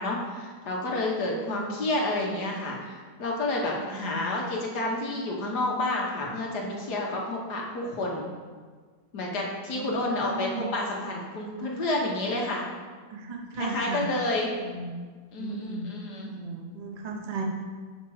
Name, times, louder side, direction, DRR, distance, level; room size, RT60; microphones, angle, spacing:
voice 1, 0.0-8.3 9.1-12.6 13.6-14.5 15.3-16.3, left 2 dB, 65° left, -2 dB, 1.7 m, -30 dB
voice 2, 3.9-4.5 9.7-10.7 11.0-11.1 11.4-11.8 13.1-14.0 14.6-15.0 15.3-15.8 16.3-17.4, right 3 dB, 50° right, 1 dB, 0.4 m, -37 dB
5.7 x 4.5 x 6.3 m, 1.5 s
omnidirectional pair, 2.0 m